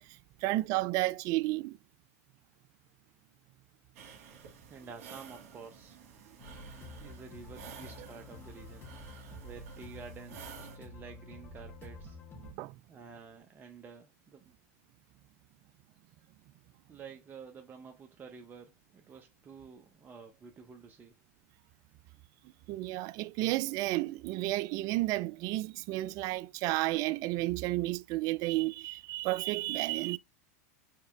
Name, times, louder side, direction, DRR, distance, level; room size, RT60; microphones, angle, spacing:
voice 1, 0.0-1.8 12.4-12.8 22.7-30.2, right 18 dB, 50° right, 0.4 m, -32 dB
sound 1, 3.9-10.8, right 7 dB, 65° right, 1.6 m, -52 dB
voice 2, 4.7-6.0 6.9-8.9 9.4-12.2 12.9-14.6 16.9-21.2, right 5 dB, 25° right, 0.7 m, -50 dB
sound 2, 6.4-12.5, left 2 dB, 25° left, 1.6 m, -49 dB
4.8 x 3.3 x 3.3 m
hypercardioid pair, 110°, 8 cm